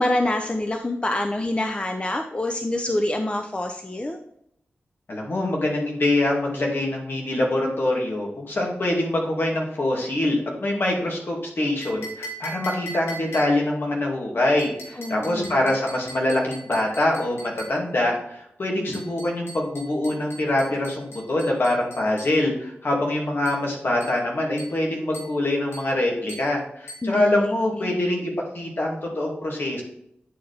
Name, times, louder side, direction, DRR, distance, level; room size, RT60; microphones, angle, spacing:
voice 1, 0.0-4.2 15.0-15.6 27.0-27.9, left 1 dB, 25° left, 5 dB, 0.7 m, -26 dB
voice 2, 5.1-29.8, left 1 dB, 60° left, -1 dB, 2.4 m, -24 dB
sound 1, 11.8-13.8 14.6-17.8 18.9-22.4 23.4-23.7 24.0-24.2 24.6-24.8 25.1-25.4 25.7-25.9 26.3-26.5 26.9-27.1, right 1 dB, 85° left, 1.8 m, -41 dB
9.1 x 4.6 x 3.5 m, 0.74 s
cardioid pair, 40°, 4 cm